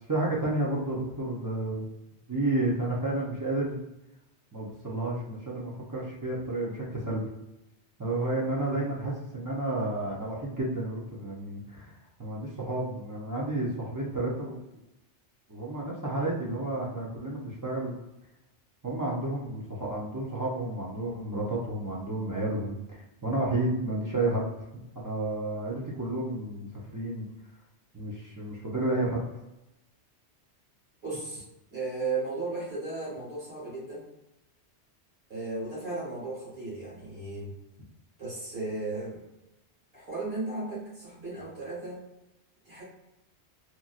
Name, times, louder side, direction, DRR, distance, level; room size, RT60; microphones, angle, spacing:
voice 1, 0.1-1.9 2.3-3.8 4.5-7.3 8.0-11.9 12.2-14.6 15.5-17.9 18.8-24.5 24.9-27.3 27.9-29.3, right 2 dB, 30° right, -4 dB, 0.4 m, -31 dB
voice 2, 31.0-31.4 31.7-34.0 35.3-37.5 38.2-39.2 39.9-42.0 42.7-42.8, right 3 dB, 60° right, -8 dB, 1.8 m, -35 dB
3.0 x 2.6 x 2.4 m, 0.93 s
omnidirectional pair, 1.2 m